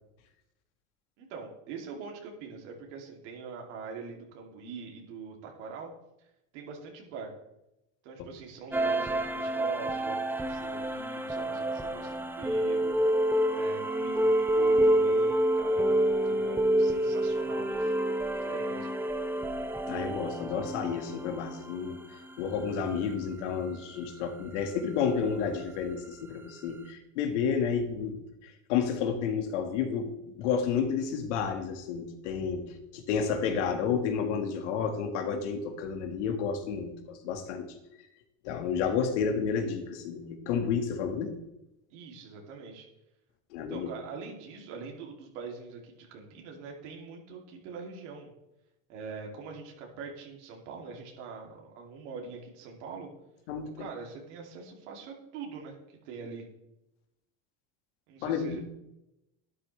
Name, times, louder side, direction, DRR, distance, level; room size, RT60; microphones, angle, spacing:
voice 1, 1.2-5.9 6.2-6.3 6.5-7.3 8.0-13.0 13.5-17.9 18.4-18.9 41.9-42.9 43.7-48.3 48.9-53.1 53.8-56.5 58.1-58.6, right 5 dB, 80° right, 0 dB, 2.8 m, -43 dB
sound 1, 8.7-22.8, right 1 dB, 5° right, 0.6 m, -28 dB
voice 2, 19.9-22.0 22.4-28.2 28.4-37.7 38.4-41.3 43.5-43.9 53.5-53.9 58.2-58.6, left 6 dB, 90° left, 6 dB, 1.8 m, -31 dB
11.5 x 10.0 x 3.3 m, 0.89 s
supercardioid pair, 130°, 35 cm